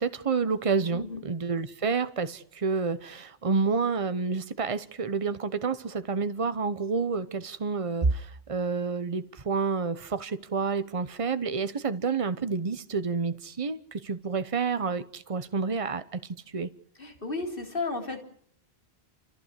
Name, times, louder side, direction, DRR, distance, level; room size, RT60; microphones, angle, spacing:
voice 1, 0.0-16.7, right 4 dB, 35° right, 12 dB, 1.0 m, -29 dB
voice 2, 0.9-1.2 17.0-18.2, left 3 dB, 60° left, 4 dB, 3.6 m, -33 dB
28.0 x 15.0 x 8.3 m, 0.66 s
omnidirectional pair, 1.1 m